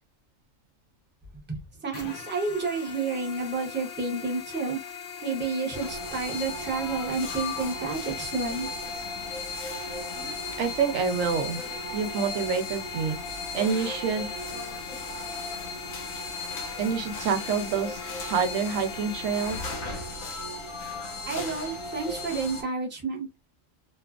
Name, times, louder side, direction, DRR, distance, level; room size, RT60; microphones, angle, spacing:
voice 1, 1.5-4.8 5.2-8.7 21.3-23.3, right 4 dB, 10° right, 0.6 m, -30 dB
sound 1, 1.9-19.7, left 7 dB, 55° left, 0.7 m, -41 dB
sound 2, 5.7-22.6, left 2 dB, 90° left, 1.2 m, -36 dB
voice 2, 10.6-11.6 11.9-13.2 13.5-14.3 16.8-19.6, right 6 dB, 80° right, 1.0 m, -27 dB
2.8 x 2.3 x 2.4 m
omnidirectional pair, 1.4 m